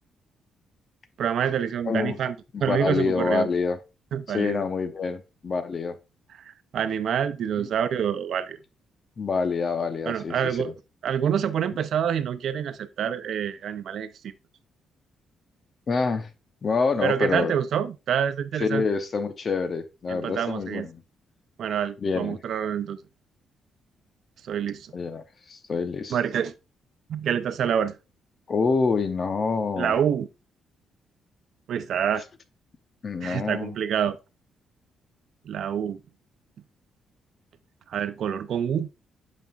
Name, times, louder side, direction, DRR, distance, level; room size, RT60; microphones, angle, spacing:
voice 1, 1.2-2.4 2.6-3.5 4.1-4.6 6.4-8.6 10.1-10.7 11.0-14.1 17.0-18.8 20.1-20.9 21.6-23.0 24.5-24.9 26.1-26.5 27.1-28.0 29.8-30.3 31.7-32.2 33.2-34.2 35.5-36.0 37.9-38.9, right 8 dB, 60° right, 0.5 m, -27 dB
voice 2, 1.9-2.2 2.5-3.8 4.3-6.0 7.6-7.7 9.2-10.7 15.9-16.3 16.6-17.5 18.6-21.0 22.0-22.4 24.9-26.2 28.5-29.9 33.0-33.7, left 4 dB, 35° left, 0.8 m, -27 dB
8.3 x 5.3 x 2.4 m
cardioid pair, 140°, 0 cm